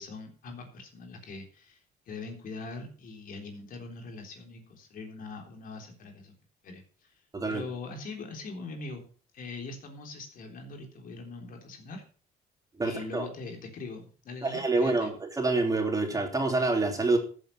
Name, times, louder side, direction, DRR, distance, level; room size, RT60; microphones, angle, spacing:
voice 1, 0.0-6.3 6.6-7.1 7.5-9.0 9.3-12.0 12.8-15.1, left 3 dB, 55° left, 4 dB, 3.6 m, -42 dB
voice 2, 7.3-7.7 12.8-13.3 14.4-17.2, right 3 dB, 20° right, 2 dB, 3.3 m, -27 dB
14.0 x 8.0 x 5.7 m, 0.40 s
cardioid pair, 110°, 17 cm